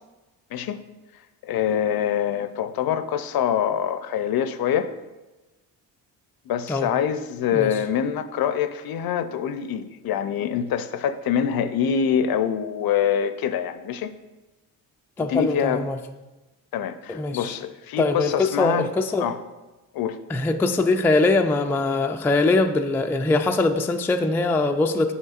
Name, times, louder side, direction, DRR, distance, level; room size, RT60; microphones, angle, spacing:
voice 1, 0.5-0.8 1.4-4.9 6.5-14.1 15.2-15.9 16.7-18.9 19.2-19.4 19.9-20.2, left 8 dB, 55° left, 11 dB, 0.6 m, -25 dB
voice 2, 15.2-16.0 17.1-17.5 18.0-19.3 20.3-25.1, left 3 dB, 5° left, 5 dB, 0.3 m, -22 dB
8.0 x 5.4 x 2.4 m, 1.1 s
supercardioid pair, 60°, 43 cm